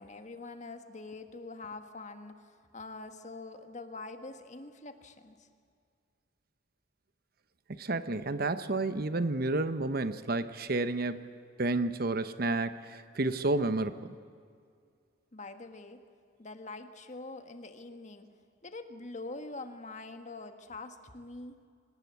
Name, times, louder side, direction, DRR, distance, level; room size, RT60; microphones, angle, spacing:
voice 1, 0.0-5.5 15.3-16.0 16.4-18.3 18.6-21.7, left 3 dB, 40° left, 7 dB, 1.5 m, -44 dB
voice 2, 7.8-11.3 11.6-14.1, right 2 dB, 55° right, 11 dB, 1.0 m, -30 dB
24.5 x 19.5 x 8.4 m, 2.2 s
head